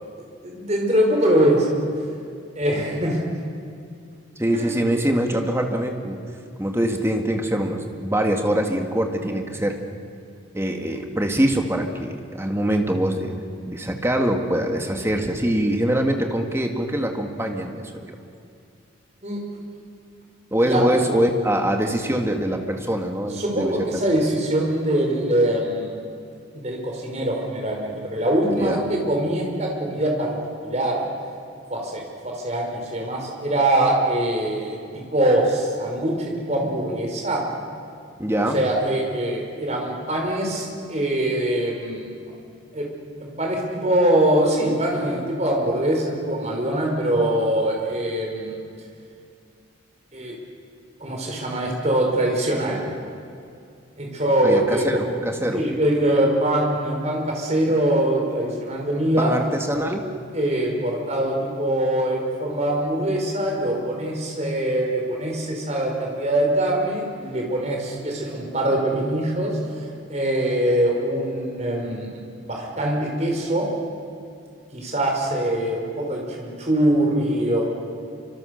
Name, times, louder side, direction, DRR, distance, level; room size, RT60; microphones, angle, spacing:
voice 1, 0.4-1.7 2.6-3.2 4.6-4.7 19.2-19.4 20.6-20.8 23.3-26.0 26.6-30.3 30.6-31.0 31.7-37.4 38.5-42.1 42.7-42.9 43.2-48.6 50.1-50.3 51.0-52.8 54.0-55.1 55.5-59.3 60.3-73.7 74.7-77.6, right 1 dB, 35° right, 0 dB, 5.2 m, -23 dB
voice 2, 4.4-6.2 6.6-9.8 10.5-18.2 20.5-23.9 28.5-28.8 38.2-38.6 54.4-55.6 59.2-60.1, right 1 dB, 15° right, 3 dB, 2.0 m, -23 dB
27.5 x 25.5 x 6.7 m, 2.4 s
head